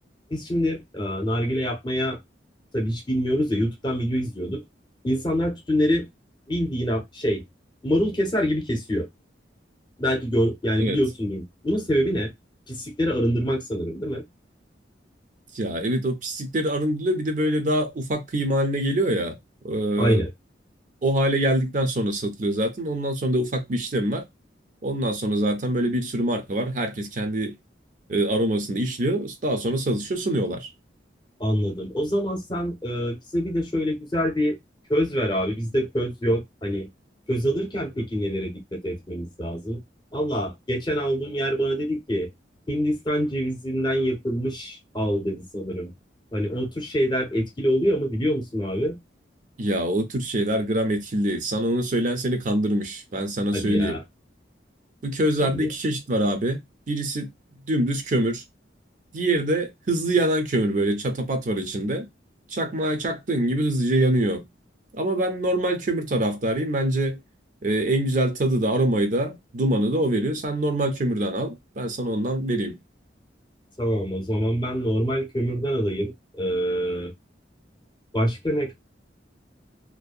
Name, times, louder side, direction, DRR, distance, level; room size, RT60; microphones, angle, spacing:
voice 1, 0.3-2.2 2.7-4.6 5.0-6.1 6.5-7.4 7.8-9.1 10.0-12.3 12.7-14.2 20.0-20.3 31.4-34.6 34.9-36.9 37.3-39.8 40.1-42.3 42.7-45.9 46.3-49.0 53.5-54.0 55.4-55.7 73.8-76.1 76.4-77.1 78.1-78.7, equal, 25° left, 0.8 m, -25 dB
voice 2, 15.5-19.4 19.6-20.2 21.0-24.2 24.8-27.5 28.1-30.7 49.6-54.0 55.0-56.6 56.9-57.3 57.7-58.4 59.1-62.1 62.5-64.4 64.9-67.2 67.6-72.8, right 1 dB, 45° right, 0.5 m, -24 dB
2.6 x 2.2 x 2.3 m
head